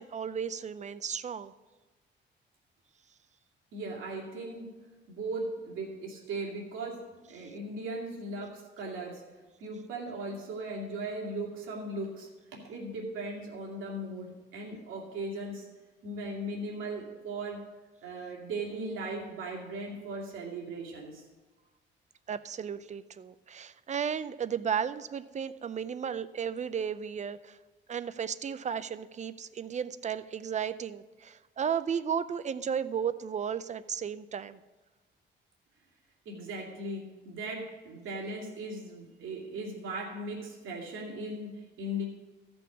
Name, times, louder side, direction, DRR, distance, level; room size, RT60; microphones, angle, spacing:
voice 1, 0.0-1.5 22.3-27.6 27.9-34.6, right 7 dB, 35° right, 14 dB, 0.5 m, -34 dB
voice 2, 3.7-4.7 5.1-9.2 9.6-15.7 16.0-17.7 18.0-21.3 36.3-42.1, right 2 dB, 85° right, -2 dB, 2.4 m, -38 dB
14.0 x 6.1 x 5.9 m, 1.2 s
cardioid pair, 90°, 20 cm